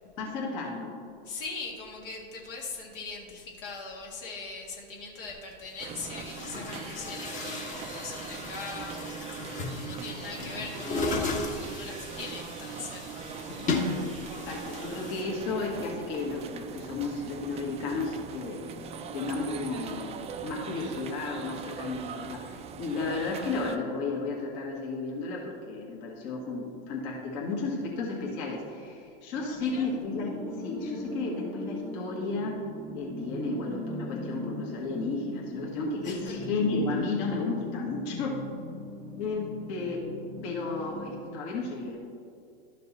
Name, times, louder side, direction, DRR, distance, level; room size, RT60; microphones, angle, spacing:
voice 1, 0.2-0.9 14.3-18.6 19.1-32.6 32.9-38.4 39.2-40.1 40.4-42.0, left 3 dB, 50° left, -2 dB, 1.7 m, -33 dB
voice 2, 1.3-13.2 29.4-29.9 36.0-36.4, left 4 dB, 65° left, -1 dB, 1.8 m, -41 dB
Chatter / Gurgling / Tap, 5.3-5.4 6.1-15.2, left 3 dB, 25° left, 1.2 m, -35 dB
sound 1, 5.8-23.8, right 6 dB, 20° right, 0.5 m, -41 dB
sound 2, 29.3-41.4, left 1 dB, 10° left, 0.9 m, -39 dB
12.0 x 5.3 x 4.2 m, 2.4 s
hypercardioid pair, 120°, 29 cm